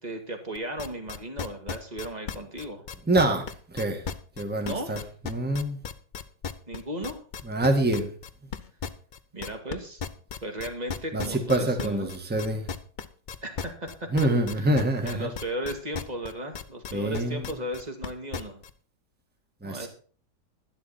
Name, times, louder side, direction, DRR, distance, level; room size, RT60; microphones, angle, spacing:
voice 1, 0.0-2.8 4.6-5.0 6.7-7.2 9.3-10.0 10.4-12.1 13.4-14.1 14.5-18.6 19.6-19.9, right 1 dB, 25° right, 4 dB, 2.1 m, -35 dB
sound 1, 0.6-18.7, left 6 dB, 85° left, 0.4 m, -35 dB
voice 2, 3.1-3.4 3.7-4.0 4.4-5.0 5.2-5.8 7.5-8.1 11.1-12.6 14.1-15.3 16.9-17.4 19.6-19.9, right 1 dB, 5° right, 5 dB, 1.5 m, -25 dB
11.5 x 11.0 x 4.2 m, 0.40 s
omnidirectional pair, 1.9 m